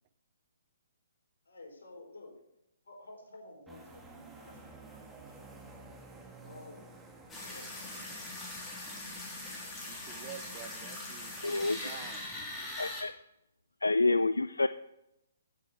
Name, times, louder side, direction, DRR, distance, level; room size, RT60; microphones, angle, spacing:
voice 1, 1.4-2.3 2.8-5.5 6.4-7.0 7.3-7.9, left 2 dB, 75° left, 0 dB, 4.7 m, -52 dB
sound 1, 3.7-9.2, right 3 dB, 5° right, 1.6 m, -52 dB
sound 2, 7.3-13.0, left 2 dB, 15° left, 3.6 m, -41 dB
voice 2, 9.8-12.2, right 10 dB, 35° right, 11 dB, 0.9 m, -49 dB
voice 3, 11.4-12.0 12.8-13.1 13.8-14.7, left 3 dB, 90° left, 14 dB, 0.4 m, -28 dB
15.0 x 6.9 x 4.5 m, 0.86 s
figure-of-eight pair, 135°, 0 cm